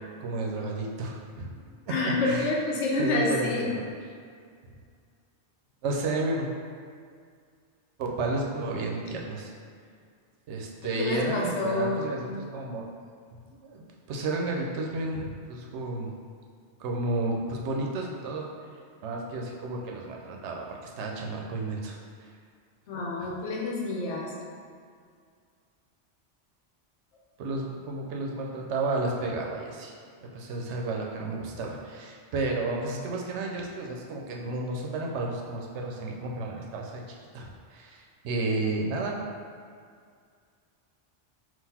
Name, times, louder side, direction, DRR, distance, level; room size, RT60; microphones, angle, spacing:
voice 1, 0.2-1.5 1.9-2.0 2.2-2.5 3.0-3.8 5.8-6.5 8.0-9.5 10.5-12.9 13.3-16.1 16.8-18.5 19.0-22.3 27.4-29.9 30.3-39.1, right 2 dB, 75° right, 0 dB, 0.9 m, -32 dB
voice 2, 1.5-3.7 10.8-12.4 22.9-24.3, left 2 dB, 80° left, -1 dB, 1.0 m, -28 dB
3.9 x 2.5 x 4.2 m, 2.2 s
omnidirectional pair, 1.2 m